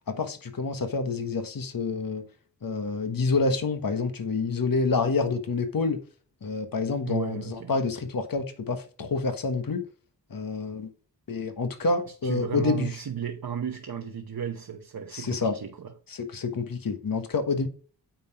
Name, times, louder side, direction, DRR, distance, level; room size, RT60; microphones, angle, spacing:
voice 1, 0.1-2.2 2.6-6.0 6.4-9.8 10.3-10.9 11.3-13.0 15.1-15.6 16.1-17.7, left 4 dB, 55° left, 1.4 m, -28 dB
voice 2, 7.1-7.8 12.2-15.9, right 8 dB, 60° right, 1.0 m, -34 dB
9.0 x 3.9 x 4.9 m
cardioid pair, 60°, 40 cm